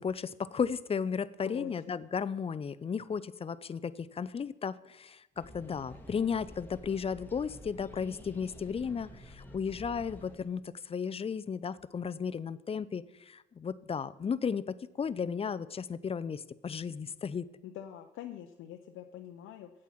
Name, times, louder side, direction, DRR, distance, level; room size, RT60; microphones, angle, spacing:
voice 1, 0.0-17.5, left 6 dB, 30° left, 16 dB, 0.5 m, -34 dB
voice 2, 1.5-2.0 17.6-19.7, left 11 dB, 85° left, 4 dB, 0.7 m, -44 dB
sound 1, 5.4-10.5, equal, 10° left, 1.5 m, -50 dB
8.4 x 7.7 x 5.9 m, 1.0 s
cardioid pair, 90°, 20 cm